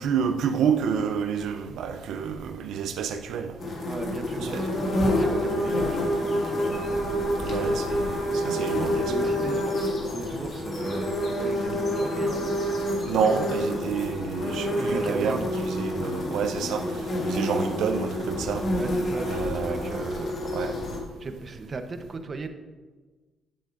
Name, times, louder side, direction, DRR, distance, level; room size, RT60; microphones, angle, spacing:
voice 1, 0.0-3.5 4.4-4.6 7.5-9.1 13.0-15.4 15.8-18.7 19.3-20.1 20.5-20.7, right 7 dB, 80° right, 6 dB, 0.5 m, -29 dB
sound 1, 3.6-21.0, equal, 50° left, 1.9 m, -28 dB
voice 2, 3.8-7.0 7.6-7.7 8.6-12.5 13.2-13.5 14.7-15.5 18.7-20.4 21.2-22.5, right 3 dB, 40° right, 7 dB, 0.7 m, -37 dB
9.9 x 7.6 x 2.5 m, 1.3 s
cardioid pair, 90°, 0 cm